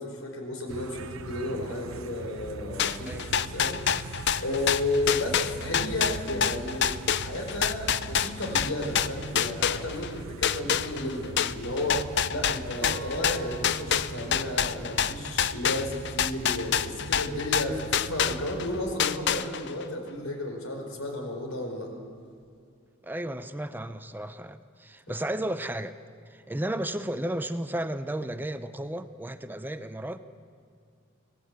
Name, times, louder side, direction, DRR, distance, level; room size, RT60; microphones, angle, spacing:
voice 1, 0.0-21.9, left 1 dB, 85° left, 2 dB, 5.0 m, -33 dB
sound 1, 0.7-19.0, right 3 dB, 85° right, 0.7 m, -42 dB
sound 2, 2.8-10.1 10.4-18.7 19.0-19.8, left 8 dB, 55° left, 0.6 m, -27 dB
sound 3, 12.8-17.9, right 2 dB, 55° right, 1.2 m, -45 dB
voice 2, 23.0-25.9 26.3-30.2, right 1 dB, 10° right, 10 dB, 0.6 m, -33 dB
25.5 x 18.5 x 8.2 m, 2.2 s
head